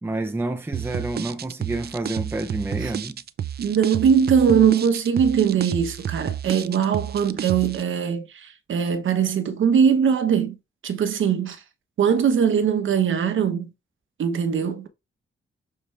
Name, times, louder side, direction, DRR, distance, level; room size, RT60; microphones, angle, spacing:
voice 1, 0.0-3.2, right 2 dB, 10° right, 0.7 m, -29 dB
sound 1, 0.7-7.8, right 9 dB, 50° right, 0.5 m, -31 dB
voice 2, 3.6-10.6 10.8-11.6 12.0-13.7 14.2-14.9, right 7 dB, 75° right, 1.3 m, -21 dB
7.0 x 4.6 x 3.4 m
wide cardioid pair, 125°, 20 cm